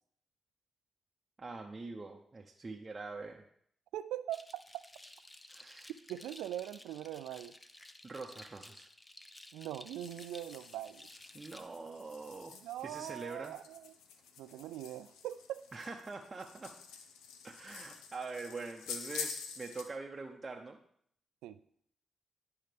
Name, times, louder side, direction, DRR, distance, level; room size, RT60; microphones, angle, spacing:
voice 1, 1.4-3.4 5.5-5.9 8.0-8.9 11.3-12.5 12.8-13.6 15.7-16.8 17.4-20.8, right 3 dB, 35° right, 1 dB, 0.7 m, -44 dB
voice 2, 3.9-4.6 6.1-7.5 9.5-11.1 12.6-13.9 14.4-15.6 21.4-21.6, right 12 dB, 90° right, 13 dB, 0.3 m, -41 dB
sound 1, 4.3-11.6, left 1 dB, 20° left, 0.7 m, -54 dB
sound 2, 9.9-19.9, left 6 dB, 90° left, 0.6 m, -48 dB
10.5 x 5.5 x 3.4 m, 0.68 s
supercardioid pair, 50°, 0 cm